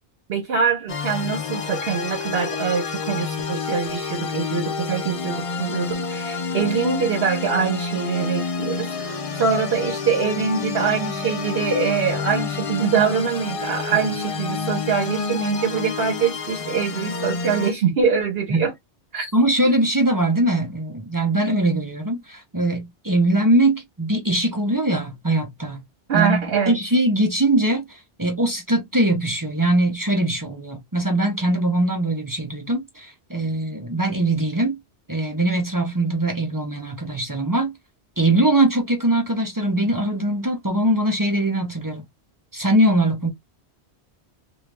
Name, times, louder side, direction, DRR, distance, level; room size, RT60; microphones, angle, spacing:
voice 1, 0.3-18.7 19.1-19.3 26.1-26.7, right 6 dB, 65° right, 1.0 m, -24 dB
sound 1, 0.9-17.7, left 5 dB, 45° left, 0.5 m, -29 dB
voice 2, 19.3-25.8 26.1-27.9 28.2-34.8 35.1-37.7 38.2-42.0 42.5-43.3, right 1 dB, 25° right, 0.5 m, -21 dB
3.1 x 2.3 x 3.2 m
omnidirectional pair, 1.1 m